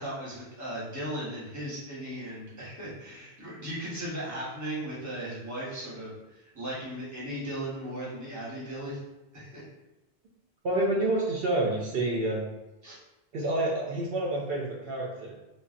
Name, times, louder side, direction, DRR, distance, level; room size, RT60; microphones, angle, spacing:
voice 1, 0.0-9.0 9.3-9.6 12.8-13.0, right 1 dB, 20° right, -7 dB, 0.9 m, -37 dB
voice 2, 10.6-12.5 13.3-15.3, right 2 dB, 65° right, -3 dB, 0.7 m, -28 dB
3.3 x 2.2 x 2.4 m, 1.0 s
omnidirectional pair, 1.1 m